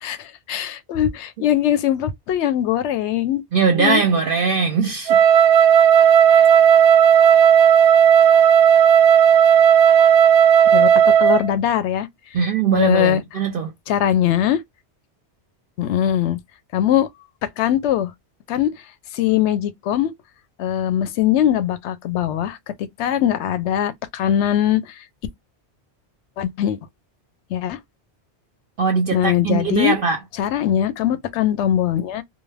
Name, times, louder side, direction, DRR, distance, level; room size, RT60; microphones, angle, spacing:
voice 1, 0.0-3.4 3.8-4.0 6.3-6.5 10.7-10.9 11.2-12.1 12.7-13.2 13.9-14.6 15.8-16.4 16.7-17.1 17.6-18.1 18.5-18.7 19.1-20.1 20.6-22.6 23.0-25.0 26.4-26.8 27.5-27.8 29.1-29.9 30.4-32.2, left 11 dB, 80° left, 0.9 m, -21 dB
voice 2, 3.5-5.2 12.3-13.7 28.8-30.2, right 5 dB, 60° right, 0.7 m, -20 dB
Wind instrument woodwind instrument, 5.1-11.5, right 8 dB, 90° right, 0.9 m, -13 dB
2.5 x 2.1 x 3.1 m
omnidirectional pair, 1.2 m